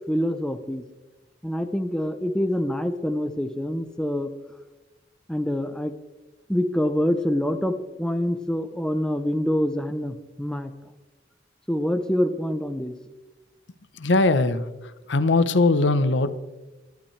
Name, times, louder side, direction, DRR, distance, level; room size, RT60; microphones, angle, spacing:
voice 1, 0.1-0.8 1.4-4.3 5.3-5.9 6.5-10.7 11.7-12.9, equal, 5° left, 8 dB, 0.7 m, -26 dB
voice 2, 14.0-14.6 15.1-16.3, left 2 dB, 85° left, 12 dB, 0.9 m, -20 dB
22.0 x 12.0 x 3.3 m, 1.1 s
head